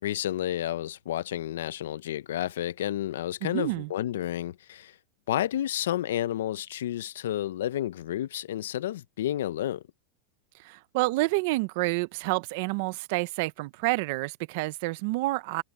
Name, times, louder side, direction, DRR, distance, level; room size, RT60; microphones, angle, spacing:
voice 1, 0.0-4.9 5.3-9.8, left 12 dB, 80° left, 0.6 m, -31 dB
voice 2, 3.4-3.9 10.5-15.6, right 22 dB, 50° right, 0.8 m, -29 dB
supercardioid pair, 160°, 0 cm